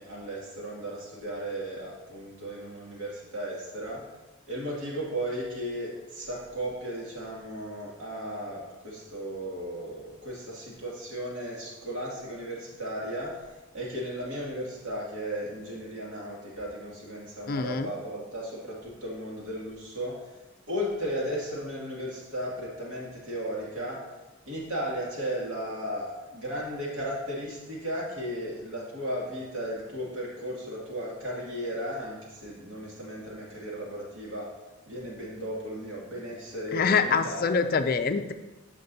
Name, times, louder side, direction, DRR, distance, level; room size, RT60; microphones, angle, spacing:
voice 1, 0.0-4.0 4.5-13.3 13.7-20.1 20.7-24.0 24.5-34.5 34.9-37.5, equal, 70° right, -4 dB, 2.4 m, -35 dB
voice 2, 17.5-17.9 36.7-38.3, left 5 dB, 45° left, 9 dB, 0.4 m, -25 dB
13.5 x 5.1 x 2.8 m, 1.1 s
head